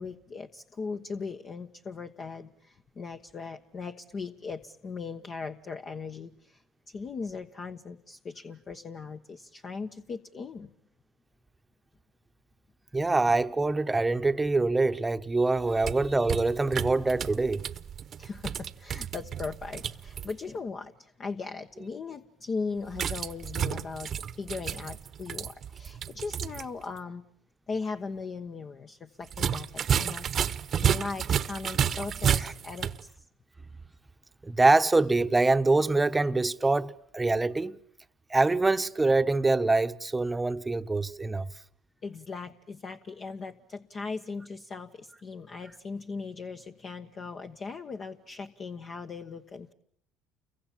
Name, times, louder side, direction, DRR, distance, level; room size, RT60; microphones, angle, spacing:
voice 1, 0.0-10.7 18.2-27.2 27.7-30.2 30.8-33.1 42.0-49.7, left 4 dB, 40° left, 1.2 m, -38 dB
voice 2, 12.9-17.6 32.4-32.5 34.4-37.8 38.3-41.5, right 3 dB, 15° right, 1.1 m, -25 dB
sound 1, 15.6-20.3 22.9-26.7 27.0-27.1 29.3-33.0, right 8 dB, 45° right, 1.1 m, -31 dB
29.5 x 23.5 x 7.3 m
supercardioid pair, 90°, 0 cm